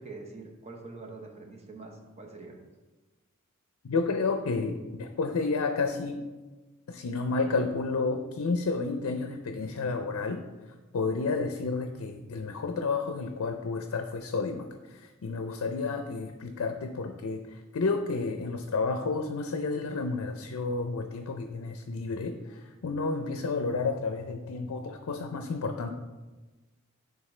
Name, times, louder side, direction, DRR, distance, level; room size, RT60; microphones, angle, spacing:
voice 1, 0.0-2.6, right 3 dB, 30° right, 2 dB, 0.8 m, -44 dB
voice 2, 3.8-6.3 6.9-10.4 10.9-25.9, left 4 dB, 75° left, 6 dB, 0.5 m, -31 dB
9.6 x 3.5 x 3.2 m, 1.2 s
head